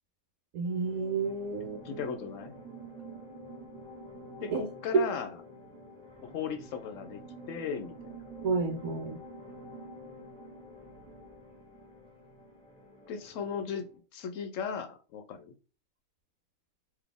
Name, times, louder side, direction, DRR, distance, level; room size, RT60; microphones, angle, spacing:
voice 1, 0.5-2.0 4.5-4.6 8.4-9.2, right 4 dB, 90° right, 4 dB, 1.2 m, -31 dB
sound 1, 0.6-14.0, right 1 dB, 5° left, 0.9 m, -48 dB
voice 2, 1.6-2.6 4.4-5.4 6.2-7.2 7.5-8.2 13.1-15.5, left 7 dB, 70° left, 8 dB, 0.9 m, -37 dB
4.0 x 2.9 x 3.4 m, 0.35 s
omnidirectional pair, 1.5 m